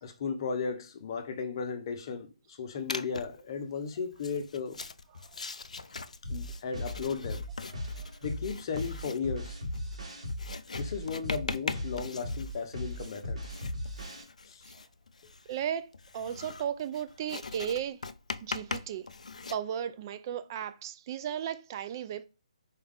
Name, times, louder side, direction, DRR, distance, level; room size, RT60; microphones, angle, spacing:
voice 1, 0.0-4.8 5.4-5.5 6.3-7.4 8.2-9.6 10.8-13.4 14.5-14.6, left 5 dB, 45° left, 0.6 m, -35 dB
Writing, 2.9-3.4 4.1-19.6, left 4 dB, 90° left, 0.3 m, -41 dB
sound 1, 6.2-14.2, left 1 dB, 85° right, 1.9 m, -37 dB
voice 2, 15.5-18.0 18.4-19.1 19.5-22.3, right 9 dB, 35° right, 0.3 m, -35 dB
4.3 x 2.4 x 3.4 m
hypercardioid pair, 150°, 4 cm